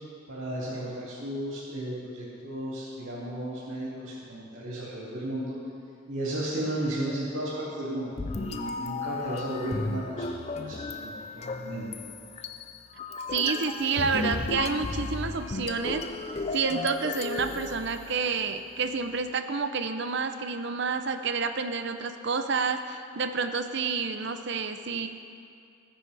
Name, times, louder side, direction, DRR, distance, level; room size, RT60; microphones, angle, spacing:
voice 1, 0.3-5.5 6.1-11.9, right 1 dB, 80° right, -10 dB, 2.4 m, -34 dB
sound 1, 8.2-18.5, left 3 dB, 30° left, 0.5 m, -34 dB
voice 2, 13.3-16.0 16.5-25.1, right 5 dB, 60° right, 8 dB, 0.7 m, -29 dB
19.0 x 9.9 x 3.4 m, 2.5 s
head